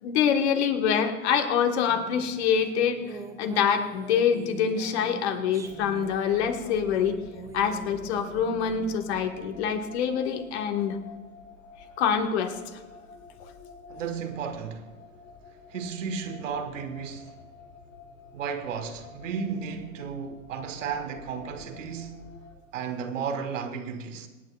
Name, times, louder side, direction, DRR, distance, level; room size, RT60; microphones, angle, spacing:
voice 1, 0.0-7.2 7.5-11.0 12.0-12.8, left 7 dB, 50° left, 1.6 m, -25 dB
sound 1, 1.9-9.0, right 4 dB, 10° right, 0.6 m, -44 dB
sound 2, 5.6-22.5, left 4 dB, 75° left, 2.3 m, -49 dB
voice 2, 13.9-14.9 15.7-17.4 18.3-22.3 22.7-24.3, right 6 dB, 60° right, 1.5 m, -34 dB
26.5 x 9.3 x 2.4 m
figure-of-eight pair, 110°, 43 cm